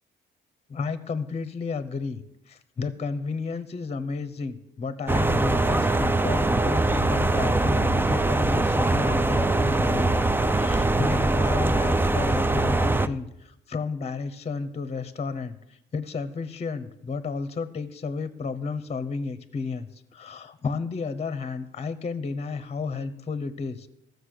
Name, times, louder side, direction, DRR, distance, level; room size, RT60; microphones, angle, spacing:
voice 1, 0.7-23.9, left 4 dB, 30° left, 13 dB, 0.9 m, -32 dB
sound 1, 5.1-13.1, right 2 dB, 10° right, 0.5 m, -22 dB
13.5 x 6.6 x 6.6 m, 0.84 s
cardioid pair, 90°, 20 cm